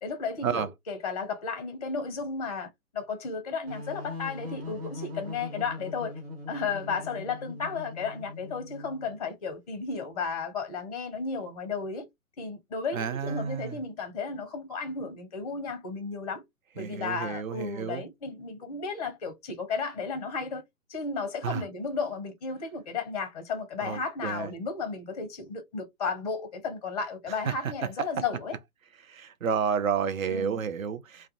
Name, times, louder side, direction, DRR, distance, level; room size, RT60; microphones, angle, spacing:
voice 1, 0.0-6.2 6.5-12.1 12.4-16.4 16.7-20.6 20.9-28.6 30.3-30.6, left 4 dB, 25° left, 0.5 m, -34 dB
sound 1, 3.7-9.2, left 3 dB, 40° right, 1.0 m, -41 dB
voice 2, 12.9-13.8 16.8-18.0 21.4-21.6 23.8-24.5 27.3-27.7 29.0-31.3, right 7 dB, 65° right, 0.6 m, -31 dB
2.3 x 2.2 x 2.6 m
figure-of-eight pair, 125°, 44 cm